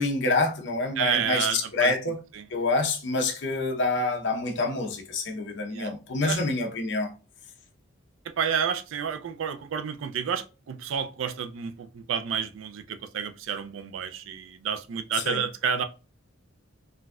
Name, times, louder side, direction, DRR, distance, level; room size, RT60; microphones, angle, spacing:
voice 1, 0.0-2.2 2.5-7.1 15.1-15.4, left 3 dB, 60° left, 0.7 m, -27 dB
voice 2, 1.0-1.9 2.4-2.5 5.7-5.9 6.2-6.4 8.3-15.8, right 7 dB, 70° right, 0.4 m, -30 dB
3.9 x 2.6 x 2.3 m
head